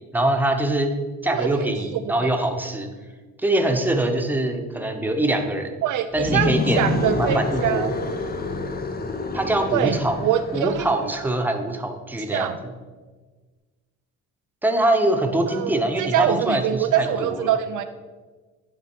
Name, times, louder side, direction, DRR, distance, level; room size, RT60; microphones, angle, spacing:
voice 1, 0.1-0.9 1.2-2.9 3.4-5.8 6.1-6.9 7.2-7.9 9.3-10.2 10.5-12.7 14.6-17.5, right 1 dB, 5° right, 4 dB, 1.0 m, -23 dB
voice 2, 1.3-1.7 2.2-2.3 5.8-7.9 9.7-10.9 12.3-12.6 15.5-17.8, right 10 dB, 60° right, 9 dB, 0.5 m, -24 dB
sound 1, 6.1-11.2, left 3 dB, 25° left, 0.7 m, -28 dB
10.5 x 3.7 x 4.5 m, 1.3 s
supercardioid pair, 75°, 36 cm